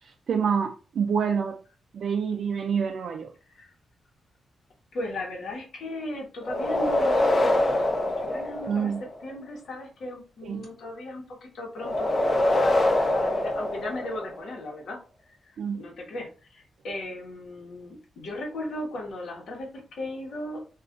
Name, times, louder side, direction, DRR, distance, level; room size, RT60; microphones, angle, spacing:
voice 1, 0.0-1.6 1.9-3.3 8.7-9.0 10.4-10.7 15.6-15.8, right 6 dB, 65° right, 0.3 m, -27 dB
voice 2, 4.9-20.6, left 1 dB, 75° left, 1.0 m, -37 dB
sound 1, 6.4-9.2 11.8-14.5, left 1 dB, 50° left, 0.6 m, -24 dB
2.4 x 2.3 x 3.6 m
cardioid pair, 115°, 0 cm